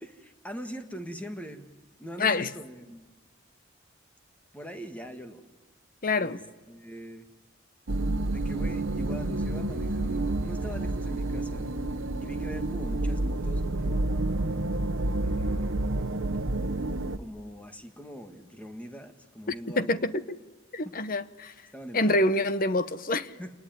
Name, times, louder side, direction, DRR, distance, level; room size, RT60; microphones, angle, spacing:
voice 1, 0.0-1.7 2.0-3.0 4.5-5.4 6.2-6.4 6.7-7.3 8.3-11.7 12.2-14.5 15.2-16.2 17.2-20.0 20.8-20.9 21.7-22.4 23.4-23.6, equal, 5° left, 1.8 m, -42 dB
voice 2, 2.2-2.5 6.0-6.4 19.8-20.2 20.7-21.5 21.9-23.3, left 2 dB, 45° left, 1.0 m, -26 dB
sound 1, 7.9-17.2, right 2 dB, 85° right, 1.0 m, -29 dB
29.0 x 19.5 x 9.3 m
head